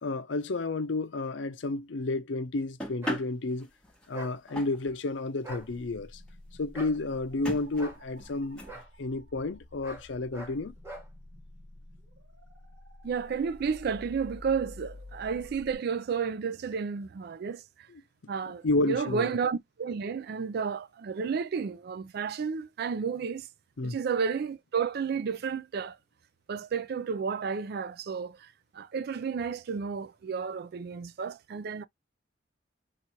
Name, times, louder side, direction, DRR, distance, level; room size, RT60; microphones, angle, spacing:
voice 1, 0.0-3.7 4.1-6.2 6.6-8.6 9.0-10.7 18.6-19.3 23.8-24.0, left 2 dB, 90° left, 0.6 m, -31 dB
sound 1, 2.8-5.0 5.6-5.7 5.9-6.0 6.3-6.4 6.9-7.0 7.4-8.8, equal, 5° left, 1.0 m, -39 dB
sound 2, 3.0-3.2 4.1-4.4 5.4-5.7 6.7-7.0 7.8-8.0 8.7-8.9 9.8-10.1 10.3-10.6 10.8-11.1, right 1 dB, 15° right, 1.1 m, -42 dB
sound 3, 5.5-15.8, left 1 dB, 75° right, 1.2 m, -50 dB
voice 2, 13.0-17.6 18.3-23.5 23.8-26.0 26.5-28.5 28.7-31.8, right 6 dB, 60° right, 0.4 m, -32 dB
2.9 x 2.4 x 4.2 m
head